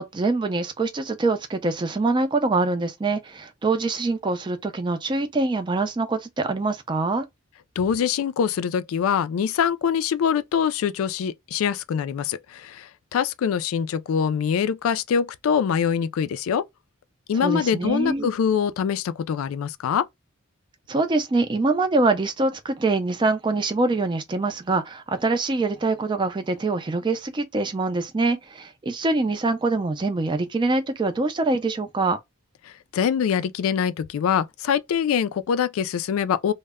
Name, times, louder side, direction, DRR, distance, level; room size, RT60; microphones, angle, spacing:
voice 1, 0.0-7.3 17.4-18.3 20.9-32.2, right 3 dB, 20° right, 0.4 m, -24 dB
voice 2, 7.8-16.6 17.3-20.1 32.6-36.5, left 7 dB, 90° left, 0.3 m, -24 dB
2.1 x 2.0 x 3.4 m
head